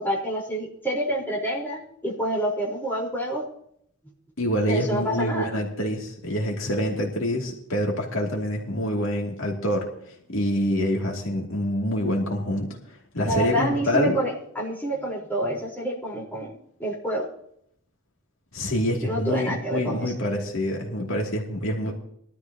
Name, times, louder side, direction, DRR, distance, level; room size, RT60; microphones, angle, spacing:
voice 1, 0.0-3.4 4.7-5.5 13.2-17.3 19.0-20.1, right 1 dB, 10° left, -5 dB, 4.3 m, -28 dB
voice 2, 4.4-9.9 10.3-12.7 13.1-14.2 18.5-21.9, equal, 65° left, -1 dB, 2.7 m, -26 dB
22.0 x 13.5 x 2.9 m, 0.68 s
head